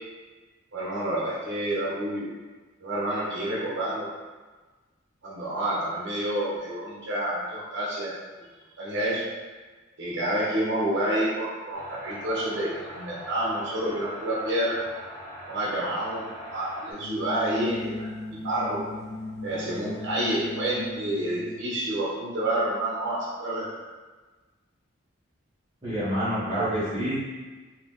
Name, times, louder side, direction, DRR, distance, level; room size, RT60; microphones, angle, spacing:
voice 1, 0.7-2.3 2.8-4.1 5.2-8.1 8.8-9.2 10.0-14.8 15.5-18.8 19.4-23.7, right 1 dB, 60° right, -6 dB, 0.8 m, -29 dB
sound 1, 11.7-16.9, equal, 10° left, 0.8 m, -42 dB
sound 2, 16.9-21.7, left 2 dB, 80° left, 0.9 m, -38 dB
voice 2, 25.8-27.1, equal, 25° right, -15 dB, 0.8 m, -27 dB
2.8 x 2.1 x 3.4 m, 1.3 s
head